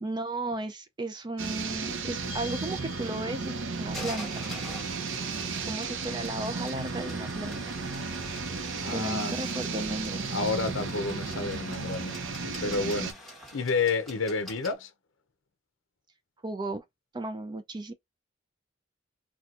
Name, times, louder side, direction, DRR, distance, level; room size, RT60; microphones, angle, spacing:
voice 1, 0.0-4.5 5.7-7.7 8.9-10.3 16.4-16.8 17.1-17.9, right 2 dB, 20° right, 0.4 m, -35 dB
sound 1, 1.4-13.1, right 4 dB, 75° right, 0.7 m, -34 dB
sound 2, 2.3-14.7, left 1 dB, ahead, 1.4 m, -46 dB
voice 2, 8.8-9.3 10.3-14.9, left 4 dB, 75° left, 0.6 m, -30 dB
4.3 x 2.2 x 2.4 m
head